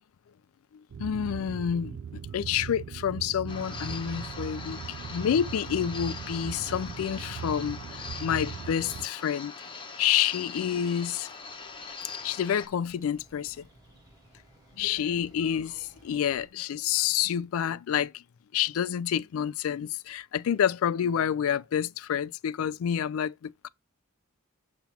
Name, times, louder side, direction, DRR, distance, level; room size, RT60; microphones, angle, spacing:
voice 1, 0.7-4.8 5.1-9.5 10.0-11.3 12.2-13.7 14.7-18.2 18.5-23.7, left 9 dB, 80° left, 0.3 m, -28 dB
sound 1, 0.9-9.1, right 7 dB, 60° right, 0.3 m, -39 dB
sound 2, 3.5-12.7, left 4 dB, 25° left, 1.0 m, -42 dB
sound 3, 11.3-16.5, right 1 dB, 20° right, 2.6 m, -59 dB
7.0 x 2.9 x 5.7 m
head